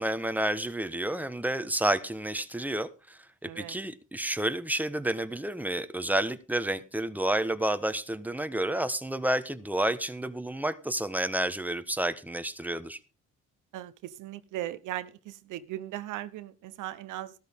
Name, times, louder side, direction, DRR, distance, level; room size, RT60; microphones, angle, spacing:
voice 1, 0.0-13.0, right 1 dB, 5° right, 11 dB, 1.3 m, -30 dB
voice 2, 3.4-3.7 13.7-17.3, right 14 dB, 90° right, 15 dB, 1.0 m, -38 dB
14.0 x 13.0 x 3.7 m, 0.32 s
cardioid pair, 90°, 30 cm